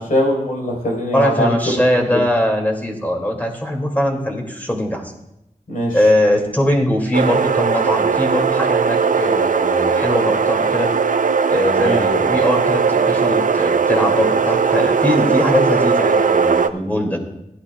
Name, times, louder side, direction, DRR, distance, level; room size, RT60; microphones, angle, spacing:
voice 1, 0.0-1.5 5.7-6.0 11.8-12.0, equal, 70° left, -3 dB, 4.3 m, -21 dB
voice 2, 1.1-5.0 5.9-10.9 11.5-17.2, left 1 dB, 10° left, 0 dB, 2.5 m, -20 dB
sound 1, 7.1-16.7, right 5 dB, 65° right, 0.5 m, -18 dB
16.0 x 11.5 x 2.4 m, 0.82 s
cardioid pair, 50°, 15 cm